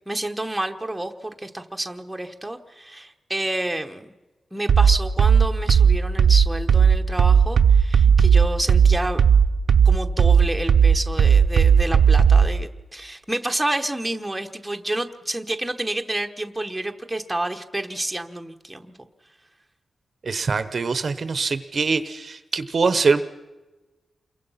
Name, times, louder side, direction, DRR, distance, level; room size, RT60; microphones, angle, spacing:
voice 1, 0.1-4.1 4.5-9.2 9.8-19.1, right 1 dB, 5° right, 4 dB, 1.1 m, -29 dB
sound 1, 4.7-12.5, right 7 dB, 65° right, 0.7 m, -15 dB
voice 2, 20.2-23.2, right 4 dB, 40° right, 12 dB, 0.9 m, -23 dB
28.5 x 23.0 x 5.7 m, 1.1 s
wide cardioid pair, 175°, 0 cm